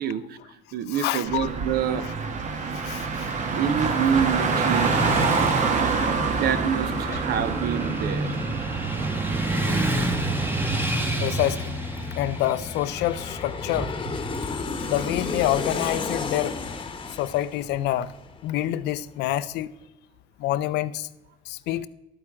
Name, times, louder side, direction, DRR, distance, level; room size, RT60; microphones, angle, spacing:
voice 1, 0.0-2.1 3.5-5.0 6.3-8.3 10.5-10.7 12.0-12.1, right 8 dB, 70° right, 0.9 m, -27 dB
voice 2, 0.9-1.5 2.7-3.3 11.2-11.8 12.2-13.9 14.8-16.6 17.1-18.1 18.4-19.7 20.4-21.1 21.5-21.9, left 14 dB, 85° left, 0.5 m, -27 dB
Car, 1.2-10.8, right 4 dB, 45° right, 1.2 m, -27 dB
Motorcycle / Traffic noise roadway noise, 3.0-17.1, right 1 dB, 10° right, 1.2 m, -30 dB
Aircraft, 8.1-19.0 19.3-19.4, left 4 dB, 30° left, 1.0 m, -35 dB
12.0 x 8.8 x 3.6 m
cardioid pair, 110°, 17 cm